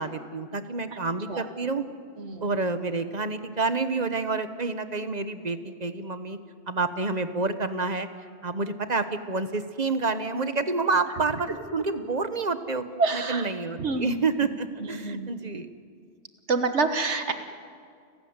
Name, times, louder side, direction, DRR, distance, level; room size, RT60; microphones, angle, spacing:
voice 1, 0.0-1.8 2.4-6.4 6.7-8.1 8.4-12.9 13.1-15.7, right 3 dB, 35° right, 10 dB, 1.2 m, -28 dB
voice 2, 13.0-13.5 13.8-14.1 14.9-15.3 16.5-17.3, right 3 dB, 70° right, 8 dB, 1.6 m, -26 dB
30.0 x 14.5 x 9.6 m, 2.2 s
omnidirectional pair, 1.2 m